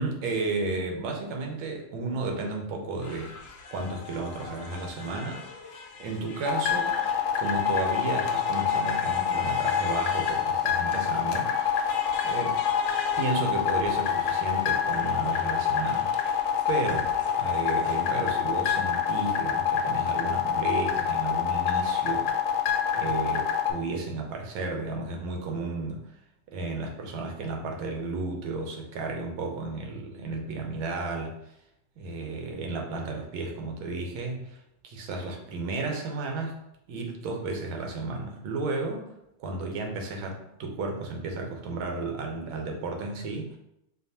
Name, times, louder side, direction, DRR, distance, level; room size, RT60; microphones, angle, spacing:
voice 1, 0.0-3.3 3.7-7.0 7.3-11.5 12.2-12.6 13.2-16.1 16.7-17.1 17.4-22.6 22.9-26.2 26.5-31.3 32.0-34.6 34.8-36.5 36.9-39.1 39.4-43.6, right 3 dB, 80° right, 2 dB, 1.5 m, -33 dB
sound 1, 3.0-18.2, left 4 dB, 70° left, 1.1 m, -42 dB
sound 2, 6.5-23.7, left 8 dB, 90° left, 1.4 m, -26 dB
4.3 x 2.9 x 2.7 m, 0.81 s
omnidirectional pair, 2.2 m